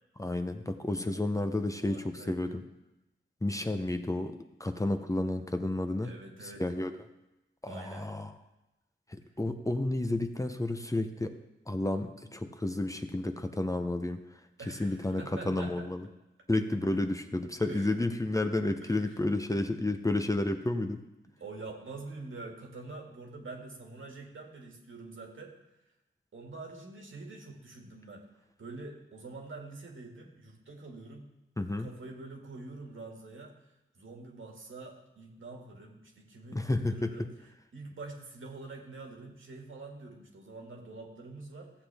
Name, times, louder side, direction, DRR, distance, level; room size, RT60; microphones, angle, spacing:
voice 1, 0.2-2.6 3.4-6.1 6.4-6.9 7.6-8.3 9.1-11.4 11.7-14.2 14.7-16.0 16.5-21.0 31.6-31.9 36.5-37.3, left 2 dB, 15° left, 7 dB, 0.6 m, -31 dB
voice 2, 1.8-2.5 3.5-3.9 6.0-6.7 7.7-8.1 14.6-15.9 17.6-18.0 18.8-19.2 21.4-25.5 26.3-28.2 28.6-31.3 31.8-37.3 37.7-41.7, right 3 dB, 80° right, 1 dB, 1.9 m, -46 dB
14.5 x 7.9 x 3.4 m, 0.97 s
wide cardioid pair, 95°, 20 cm